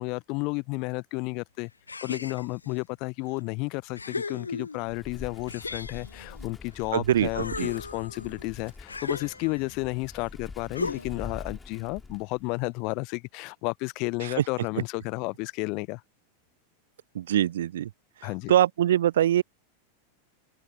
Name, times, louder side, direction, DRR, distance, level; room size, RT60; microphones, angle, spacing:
voice 1, 0.0-1.7 2.0-16.0 18.2-18.5, left 28 dB, 45° left, 0.7 m, -32 dB
sound 1, 1.9-2.7 3.4-3.5 3.9-5.0 5.5-6.9 7.2-9.8 10.7-11.3, left 4 dB, 80° left, 0.3 m, -36 dB
Wind, 4.8-12.5, left 4 dB, 10° left, 2.5 m, -45 dB
voice 2, 6.9-7.7 14.2-14.4 17.1-17.9 18.5-19.4, right 11 dB, 60° right, 0.3 m, -23 dB
open air
figure-of-eight pair, 90°, 0 cm